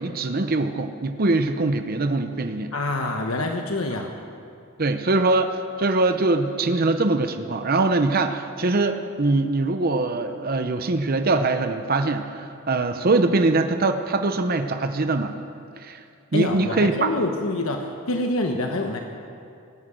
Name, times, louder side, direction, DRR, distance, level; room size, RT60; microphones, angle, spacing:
voice 1, 0.0-2.7 4.8-15.4 15.8-16.0 16.3-17.1, right 2 dB, 45° right, 7 dB, 0.7 m, -22 dB
voice 2, 2.7-4.1 16.3-19.0, left 2 dB, 80° left, 3 dB, 1.2 m, -26 dB
18.5 x 9.9 x 7.9 m, 2.5 s
head